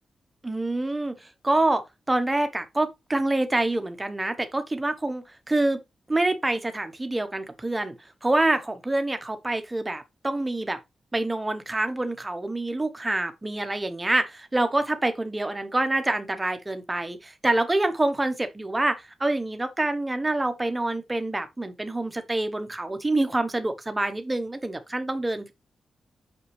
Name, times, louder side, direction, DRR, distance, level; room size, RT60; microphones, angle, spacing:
voice 1, 0.4-1.8 2.1-5.8 6.1-8.0 8.2-10.8 11.1-25.5, right 2 dB, 15° right, 1.0 m, -26 dB
6.1 x 5.7 x 3.2 m
wide cardioid pair, 170°, 0 cm